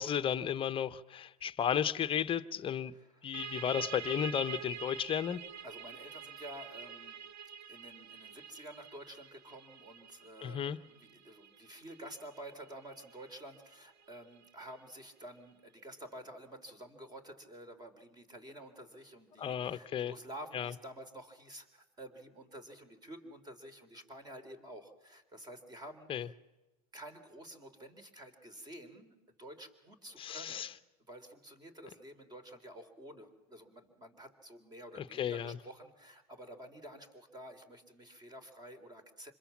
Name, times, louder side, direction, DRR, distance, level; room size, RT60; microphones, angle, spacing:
voice 1, 0.0-2.9 3.2-5.4 10.4-10.8 19.4-20.1 20.5-20.7 26.1-26.3 30.2-30.7 35.2-35.6, left 9 dB, 25° left, 1.0 m, -33 dB
voice 2, 2.9-3.4 5.6-7.2 7.7-26.4 26.9-30.7 31.1-39.3, right 1 dB, 20° right, 3.7 m, -50 dB
sound 1, 3.3-14.7, right 7 dB, 50° right, 1.4 m, -47 dB
26.5 x 21.5 x 7.4 m
supercardioid pair, 120°, 20 cm